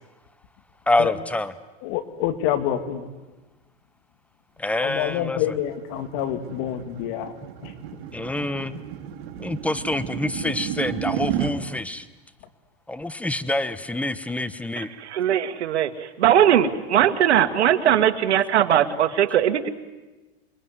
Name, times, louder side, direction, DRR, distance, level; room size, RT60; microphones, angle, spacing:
voice 1, 0.9-1.5 4.6-5.4 8.1-8.8 9.4-12.1 12.9-14.9, left 2 dB, 5° left, 14 dB, 1.1 m, -26 dB
voice 2, 1.8-3.1 4.8-7.3 7.6-7.7, left 11 dB, 55° left, 9 dB, 2.7 m, -27 dB
sound 1, 5.1-11.5, right 10 dB, 65° right, 2.9 m, -32 dB
voice 3, 14.8-19.7, right 10 dB, 90° right, 9 dB, 2.0 m, -20 dB
28.5 x 21.5 x 9.7 m, 1.2 s
supercardioid pair, 125°, 33 cm